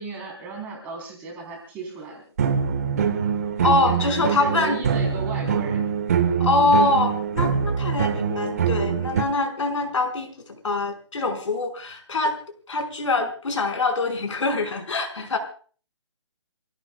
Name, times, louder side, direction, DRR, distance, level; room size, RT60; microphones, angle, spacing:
voice 1, 0.0-2.2 3.8-5.8 7.5-7.8, right 4 dB, 10° right, 0 dB, 3.6 m, -35 dB
sound 1, 2.4-9.2, right 7 dB, 30° right, 1.4 m, -24 dB
voice 2, 3.6-4.8 6.4-12.3 12.7-15.4, left 3 dB, 75° left, 4 dB, 4.9 m, -24 dB
28.0 x 16.5 x 2.3 m, 0.41 s
hypercardioid pair, 175°, 16 cm